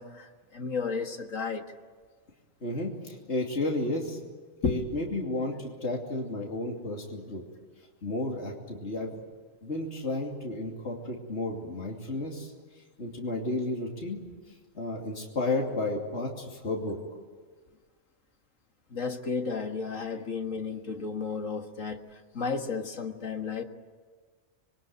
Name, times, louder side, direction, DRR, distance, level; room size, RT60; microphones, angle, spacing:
voice 1, 0.0-1.6 4.6-4.8 18.9-22.0 22.3-23.6, left 4 dB, 75° left, 5 dB, 2.1 m, -32 dB
voice 2, 2.6-4.2 4.6-7.4 8.0-9.2 9.6-12.5 13.0-14.2 14.7-17.0, left 2 dB, 55° left, 0 dB, 3.1 m, -32 dB
27.0 x 22.0 x 9.4 m, 1.5 s
omnidirectional pair, 1.3 m